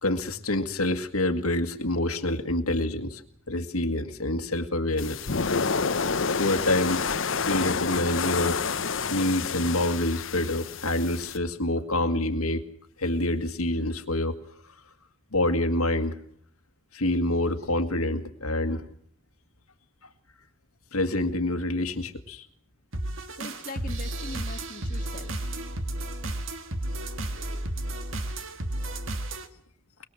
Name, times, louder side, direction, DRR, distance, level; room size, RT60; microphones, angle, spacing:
voice 1, 0.0-3.2 3.5-5.3 6.3-7.0 7.5-8.6 9.1-12.6 13.0-14.4 14.6-14.7 15.3-16.2 16.9-18.9 20.9-22.5, left 1 dB, 85° left, 6 dB, 2.0 m, -27 dB
sound 1, 5.0-11.4, left 5 dB, 60° left, 0.9 m, -29 dB
sound 2, 22.9-29.5, right 1 dB, 60° right, 1.9 m, -33 dB
voice 2, 23.3-25.6, left 2 dB, 40° left, 3 dB, 1.8 m, -41 dB
23.0 x 22.0 x 7.7 m, 0.62 s
head